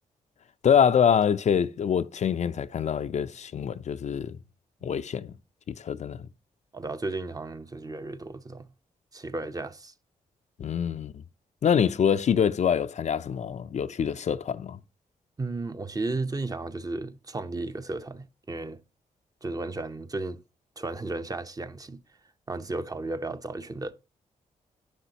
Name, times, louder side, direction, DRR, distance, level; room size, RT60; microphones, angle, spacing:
voice 1, 0.6-4.4 4.8-5.3 5.7-6.2 10.6-11.2 11.6-14.8, left 8 dB, 55° left, 0.5 m, -25 dB
voice 2, 6.7-8.7 9.1-9.9 14.0-14.1 15.4-18.8 19.4-20.4 20.8-22.0 22.5-23.9, right 2 dB, 25° right, 0.7 m, -34 dB
10.0 x 6.3 x 2.8 m
cardioid pair, 70°, 14 cm